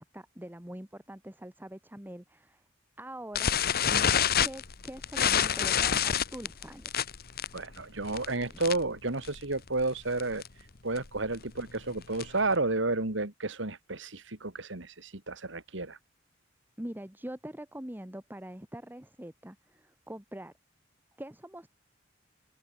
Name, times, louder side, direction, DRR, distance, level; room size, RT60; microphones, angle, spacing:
voice 1, 0.0-2.6 3.0-3.5 3.9-4.1 4.4-7.0 8.5-8.6 16.8-20.5 21.2-21.7, right 1 dB, 10° right, 1.9 m, -43 dB
sound 1, 3.3-9.0 9.2-9.5 9.8-9.9 10.2-10.5 11.0-12.5, left 8 dB, 55° left, 1.1 m, -27 dB
voice 2, 7.5-10.4 10.8-16.0, right 2 dB, 70° right, 2.6 m, -31 dB
open air
head